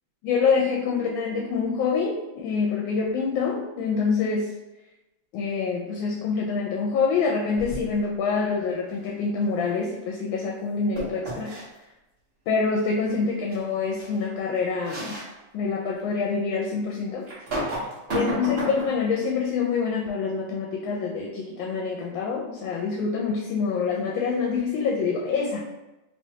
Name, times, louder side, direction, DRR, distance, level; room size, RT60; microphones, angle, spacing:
voice 1, 0.2-4.5 5.3-11.5 12.5-15.1 15.5-17.3 17.7-17.8 18.1-25.6, left 5 dB, 75° left, -2 dB, 1.3 m, -26 dB
sound 1, 7.6-8.1 11.0-11.6 13.5-13.6 14.0-14.1 14.8-15.3 15.9-16.0 17.3-19.0, right 1 dB, 45° right, 0.8 m, -31 dB
3.2 x 3.1 x 2.8 m, 1.0 s
omnidirectional pair, 2.3 m